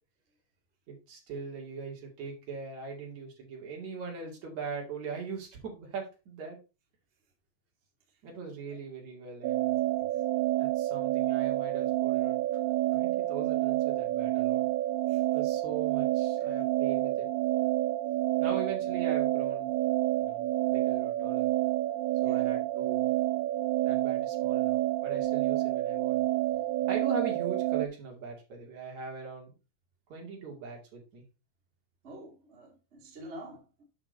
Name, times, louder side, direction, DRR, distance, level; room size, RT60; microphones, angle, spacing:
voice 1, 0.9-6.6 8.2-9.8 10.6-12.4 12.9-14.7 15.3-17.3 18.4-19.7 20.2-21.5 22.2-23.1 23.8-26.2 26.9-29.5 30.1-31.2, right 5 dB, 45° right, 3.3 m, -40 dB
sound 1, 9.4-27.9, right 16 dB, 85° right, 2.2 m, -28 dB
voice 2, 9.9-10.2 15.1-15.2 16.4-16.6 18.4-18.5 22.2-22.5 32.0-33.8, right 1 dB, 65° right, 0.6 m, -48 dB
8.2 x 5.9 x 4.0 m
omnidirectional pair, 5.1 m